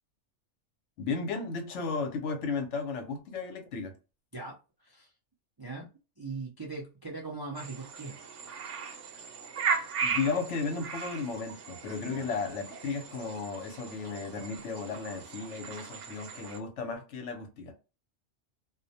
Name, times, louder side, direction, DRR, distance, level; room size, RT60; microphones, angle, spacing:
voice 1, 1.0-3.9 10.0-17.7, left 4 dB, 75° left, 1.0 m, -34 dB
voice 2, 4.3-5.1 5.6-5.9 6.2-8.2 12.1-12.3, right 3 dB, 40° right, 0.3 m, -40 dB
sound 1, 7.5-16.6, right 6 dB, 75° right, 1.0 m, -37 dB
2.4 x 2.1 x 2.7 m
omnidirectional pair, 1.3 m